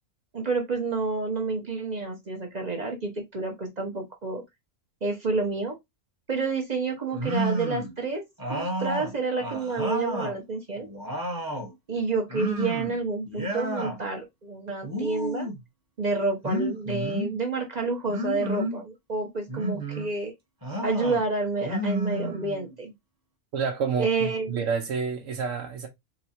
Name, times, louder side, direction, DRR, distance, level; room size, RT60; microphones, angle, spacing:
voice 1, 0.3-4.4 5.0-5.7 6.3-8.2 8.5-10.9 11.9-15.5 16.0-20.3 20.8-22.9 24.0-24.6, right 3 dB, 40° right, 0.8 m, -29 dB
sound 1, 7.1-7.9 8.4-10.4 10.8-11.7 12.3-13.0 13.3-14.0 14.8-15.6 16.4-17.3 18.1-18.8 19.5-20.1 20.6-21.2 21.6-22.7, equal, 15° right, 1.1 m, -31 dB
voice 2, 23.5-25.9, right 5 dB, 75° right, 1.0 m, -29 dB
3.9 x 2.1 x 4.2 m
omnidirectional pair, 1.4 m